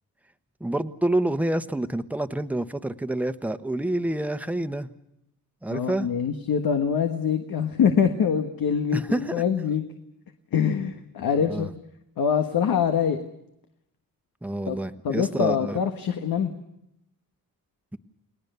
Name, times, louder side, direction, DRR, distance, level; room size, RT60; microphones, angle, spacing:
voice 1, 0.6-4.9 5.6-6.1 8.9-9.4 11.3-11.7 14.4-15.8, right 1 dB, 5° right, 9 dB, 1.2 m, -28 dB
voice 2, 5.7-9.9 10.5-11.7 12.2-13.2 14.7-14.8 15.0-16.5, left 7 dB, 80° left, 6 dB, 1.6 m, -24 dB
30.0 x 19.0 x 6.9 m, 0.82 s
cardioid pair, 80°, 35 cm